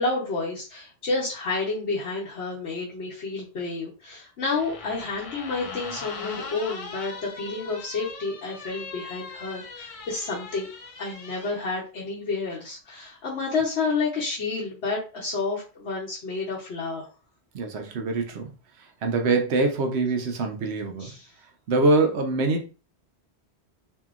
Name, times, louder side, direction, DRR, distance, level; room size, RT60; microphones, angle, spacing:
voice 1, 0.0-10.7 11.0-17.1 21.0-21.2, left 3 dB, 85° left, -6 dB, 1.1 m, -30 dB
sound 1, 4.5-11.6, left 4 dB, 60° left, 0.3 m, -40 dB
voice 2, 17.5-18.5 19.0-21.1 21.7-22.7, right 3 dB, 80° right, 4 dB, 0.9 m, -24 dB
2.8 x 2.6 x 2.4 m, 0.33 s
omnidirectional pair, 1.1 m